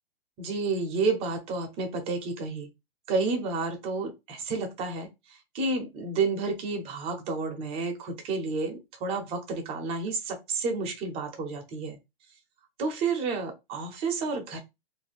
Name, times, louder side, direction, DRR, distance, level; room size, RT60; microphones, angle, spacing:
voice 1, 0.4-2.7 3.1-12.0 12.8-14.6, right 4 dB, 20° right, 0.6 m, -30 dB
2.6 x 2.1 x 3.3 m
hypercardioid pair, 145°, 31 cm